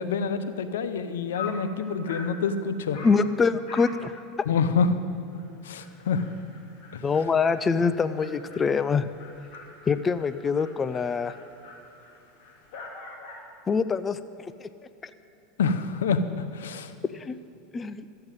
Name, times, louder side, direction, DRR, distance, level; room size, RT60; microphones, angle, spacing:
voice 1, 0.0-3.0 4.5-4.9 5.6-6.2 6.9-7.0 15.6-16.9, left 5 dB, 90° left, 11 dB, 0.8 m, -27 dB
Dog, 1.0-1.1 1.3-1.7 2.1-2.4 2.9-3.2 3.7-4.0 4.3-4.4 4.8-4.9 5.3-5.4 5.7-13.5, left 4 dB, 60° left, 3.1 m, -44 dB
voice 2, 3.0-4.2 7.0-9.1 9.9-11.3 13.7-14.7 17.1-17.4 17.7-18.1, left 5 dB, 20° left, 13 dB, 0.5 m, -25 dB
13.5 x 7.9 x 9.0 m, 2.8 s
supercardioid pair, 115°, 0 cm